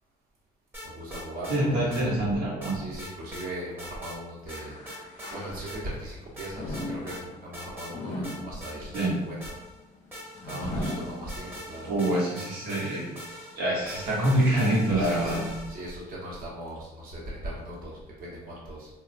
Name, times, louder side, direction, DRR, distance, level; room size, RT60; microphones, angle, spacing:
sound 1, 0.7-1.6 1.9-2.0 2.6-3.5 3.8-4.2 4.5-5.3 5.7-5.8 6.4-7.2 7.5-7.9 8.2-9.8 10.1-15.9, equal, 15° right, 0.8 m, -42 dB
voice 1, 0.8-2.1 2.7-4.8 5.3-9.6 10.4-11.9 14.9-18.9, right 1 dB, 60° right, -6 dB, 0.9 m, -39 dB
voice 2, 1.5-2.8 8.9-9.2 11.8-13.1 13.6-15.4, right 1 dB, 85° right, -4 dB, 0.9 m, -25 dB
sound 2, 4.5-6.0 6.5-11.8 12.3-12.4 13.2-13.3, left 1 dB, 45° left, 0.6 m, -38 dB
3.0 x 2.2 x 2.5 m, 0.99 s
cardioid pair, 110°, 17 cm